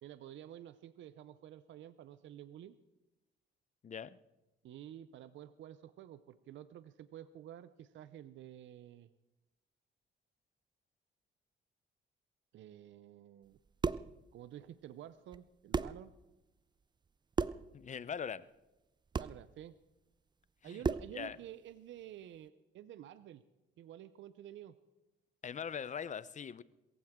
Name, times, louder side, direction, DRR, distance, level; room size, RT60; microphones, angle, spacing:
voice 1, 0.0-2.8 4.6-9.1 12.5-13.6 14.3-16.1 19.1-19.7 20.6-23.4 23.8-24.8, right 11 dB, 70° right, 0.6 m, -51 dB
voice 2, 3.8-4.2 17.7-18.5 20.6-20.8 21.1-21.4 25.4-26.6, left 7 dB, 40° left, 0.6 m, -41 dB
sound 1, 13.5-14.1 15.3-15.4 15.7-16.0 17.3-17.7 19.1-19.4 20.8-21.2, right 5 dB, 20° right, 0.4 m, -34 dB
21.5 x 15.5 x 3.7 m
cardioid pair, 90°, 20 cm